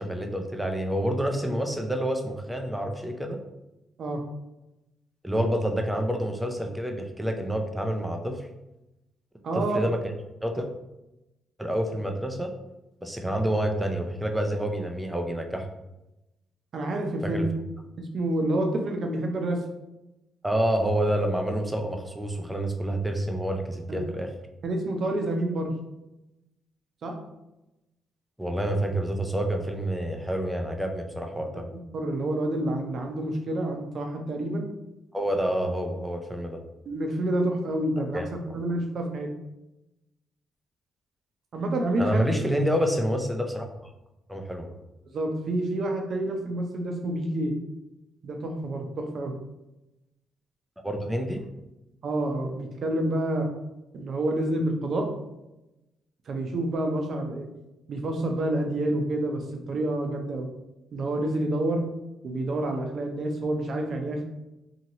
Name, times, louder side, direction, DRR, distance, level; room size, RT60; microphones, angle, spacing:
voice 1, 0.0-3.4 5.2-8.5 9.5-10.0 10.4-10.7 11.6-12.5 13.0-15.6 17.2-17.4 20.4-24.3 28.4-31.7 35.1-36.6 38.0-38.6 42.0-43.9 44.3-44.7 50.8-51.4, right 1 dB, 5° right, 3 dB, 0.4 m, -28 dB
voice 2, 9.4-9.8 16.7-17.5 18.0-19.6 23.9-24.0 24.6-25.7 27.0-27.1 31.9-34.7 36.9-38.2 38.5-39.3 41.5-42.3 45.1-47.5 48.2-49.3 52.0-53.5 53.9-55.1 56.3-57.5 57.9-60.5 60.9-61.8 62.2-64.2, right 1 dB, 55° right, 3 dB, 0.6 m, -28 dB
2.8 x 2.8 x 2.7 m, 0.94 s
cardioid pair, 90°, 0 cm